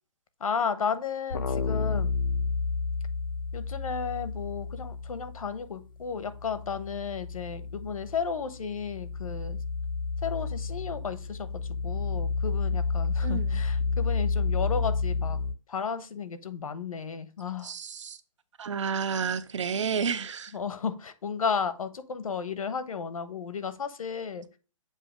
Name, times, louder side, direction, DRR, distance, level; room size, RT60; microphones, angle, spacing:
voice 1, 0.4-2.1 3.5-9.6 10.2-11.5 11.8-15.4 15.7-17.7 20.5-24.4, left 6 dB, 90° left, 1.0 m, -33 dB
sound 1, 1.3-5.7 6.0-15.5, left 4 dB, 40° left, 0.5 m, -31 dB
voice 2, 13.2-13.6 17.6-18.2 18.6-20.5, right 6 dB, 60° right, 0.7 m, -31 dB
7.6 x 2.7 x 4.9 m
hypercardioid pair, 175°, 17 cm